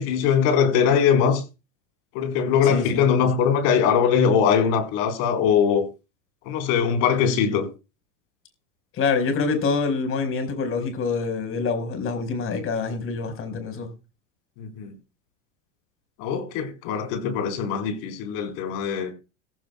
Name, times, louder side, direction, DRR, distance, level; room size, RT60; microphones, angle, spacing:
voice 1, 0.0-1.4 2.1-5.8 6.5-7.7 14.6-14.9 16.2-19.1, left 7 dB, 60° left, 4.3 m, -21 dB
voice 2, 2.6-3.1 8.9-13.9, left 4 dB, 35° left, 4.8 m, -26 dB
18.5 x 15.5 x 2.3 m
supercardioid pair, 130°, 36 cm